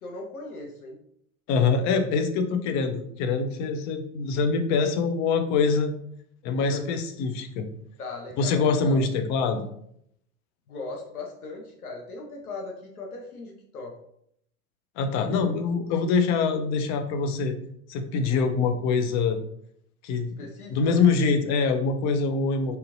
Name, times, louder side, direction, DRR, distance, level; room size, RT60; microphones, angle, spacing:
voice 1, 0.0-1.0 6.6-7.0 8.0-9.0 10.7-13.9 20.4-21.0, left 3 dB, 80° left, 1 dB, 0.8 m, -38 dB
voice 2, 1.5-5.9 6.4-7.7 8.4-9.7 15.0-17.6 17.9-19.4 20.0-20.4 20.7-22.8, left 5 dB, 40° left, 7 dB, 0.7 m, -24 dB
3.9 x 3.9 x 2.6 m, 0.70 s
figure-of-eight pair, 80°, 43 cm